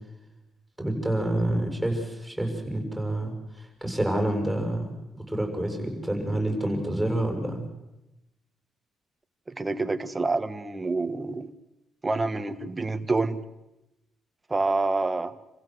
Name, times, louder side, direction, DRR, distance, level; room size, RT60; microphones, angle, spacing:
voice 1, 0.8-4.9 5.3-7.7, right 1 dB, ahead, 3 dB, 7.6 m, -28 dB
voice 2, 9.5-11.5 12.0-13.4 14.5-15.3, right 3 dB, 20° right, 11 dB, 1.6 m, -27 dB
27.5 x 15.5 x 8.1 m, 0.95 s
cardioid pair, 90°, 0 cm